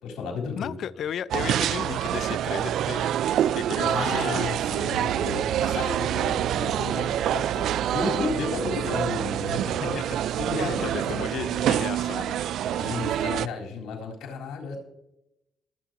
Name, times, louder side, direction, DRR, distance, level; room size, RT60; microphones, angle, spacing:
voice 1, 0.0-0.8 3.8-10.0 10.3-11.2 12.7-14.8, left 4 dB, 90° left, -2 dB, 3.9 m, -33 dB
voice 2, 0.6-3.2 3.5-4.6 9.7-10.2 10.6-12.4, left 9 dB, 70° left, 18 dB, 0.4 m, -35 dB
sound 1, 1.3-13.5, right 11 dB, 75° right, 0.3 m, -26 dB
24.0 x 9.0 x 2.9 m, 0.89 s
cardioid pair, 90°, 0 cm